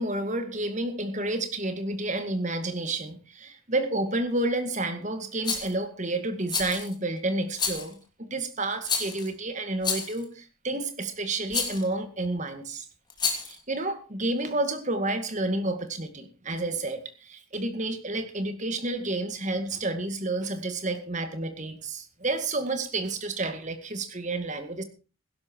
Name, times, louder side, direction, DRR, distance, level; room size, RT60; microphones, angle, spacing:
voice 1, 0.0-12.9 13.4-24.8, right 2 dB, 35° right, 8 dB, 2.1 m, -30 dB
Rattle, 5.4-5.7 6.5-6.9 7.6-7.9 8.9-9.3 9.8-10.2 11.5-11.8 13.1-13.6, left 5 dB, 20° left, 2.8 m, -29 dB
16.0 x 12.0 x 4.7 m, 0.34 s
head